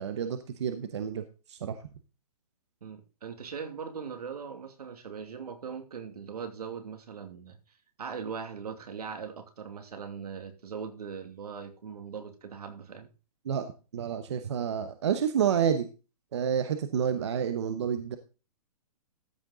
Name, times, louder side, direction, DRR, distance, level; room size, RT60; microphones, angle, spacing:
voice 1, 0.0-1.8 13.4-15.9 16.3-18.2, right 8 dB, 45° right, 9 dB, 0.9 m, -29 dB
voice 2, 2.8-7.6 8.0-13.1, right 6 dB, 80° right, 6 dB, 2.7 m, -40 dB
13.5 x 6.2 x 3.8 m, 0.32 s
hypercardioid pair, 175°, 20 cm